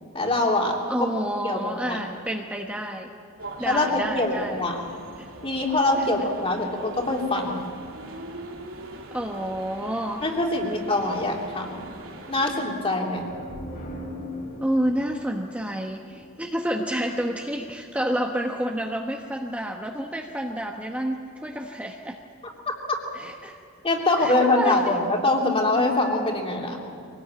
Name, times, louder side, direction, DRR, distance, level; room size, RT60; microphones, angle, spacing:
voice 1, 0.1-1.1 1.4-2.0 3.6-4.3 4.6-4.8 5.4-7.6 10.2-11.8 12.3-13.3 22.7-23.0 23.8-26.8, left 2 dB, 30° left, 0 dB, 3.2 m, -24 dB
voice 2, 0.9-3.1 3.6-4.6 5.2-5.3 6.0-6.3 9.1-10.2 14.6-22.2 23.1-23.6 24.2-25.0, equal, 5° right, 1 dB, 1.1 m, -29 dB
sound 1, 3.4-12.6, right 2 dB, 90° right, 2.9 m, -42 dB
sound 2, 13.1-16.8, left 1 dB, 45° left, 3.2 m, -39 dB
23.5 x 18.5 x 8.8 m, 2.4 s
head